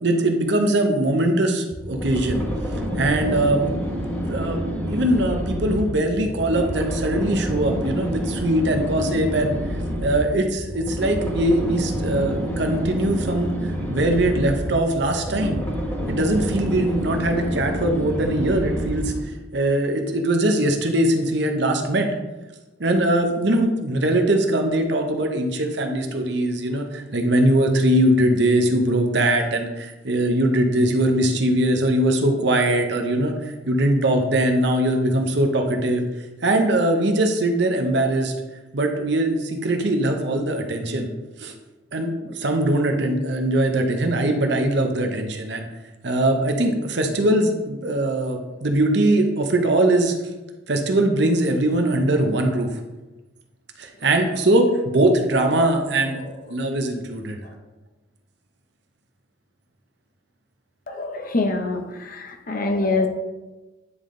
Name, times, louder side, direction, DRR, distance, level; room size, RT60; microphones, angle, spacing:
voice 1, 0.0-2.5 3.0-3.7 4.3-9.5 10.0-15.6 16.1-19.1 19.5-22.1 22.8-36.0 36.4-38.3 38.7-41.1 41.4-41.5 41.9-45.6 46.0-50.2 50.7-52.7 53.8-56.2 56.5-57.4, right 1 dB, 55° right, 4 dB, 0.8 m, -21 dB
sound 1, 1.7-19.3, equal, 10° left, 1.5 m, -28 dB
voice 2, 60.9-63.1, left 3 dB, 45° left, 5 dB, 0.7 m, -25 dB
9.6 x 3.5 x 3.8 m, 1.1 s
head